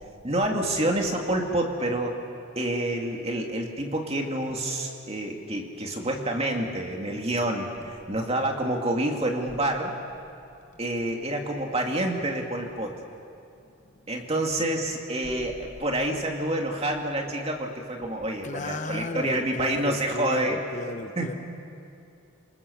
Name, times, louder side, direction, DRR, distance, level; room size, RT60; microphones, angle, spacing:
voice 1, 0.2-2.2 2.6-9.9 10.8-13.0 14.1-20.6 21.2-21.3, right 1 dB, 30° right, 2 dB, 2.5 m, -28 dB
voice 2, 13.7-14.1 15.2-15.3 18.4-21.3, left 2 dB, 35° left, 7 dB, 0.9 m, -35 dB
28.0 x 26.0 x 7.2 m, 2.6 s
head